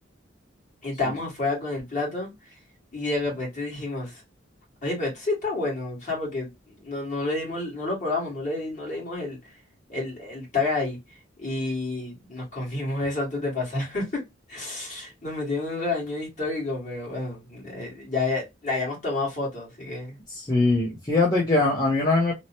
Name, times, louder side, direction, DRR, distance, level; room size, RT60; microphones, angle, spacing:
voice 1, 0.8-2.6 2.9-4.2 4.8-9.6 9.9-14.2 14.5-20.2, left 2 dB, 40° left, 1.6 m, -30 dB
voice 2, 20.3-22.3, left 2 dB, 20° left, 0.6 m, -22 dB
3.0 x 2.0 x 2.7 m
head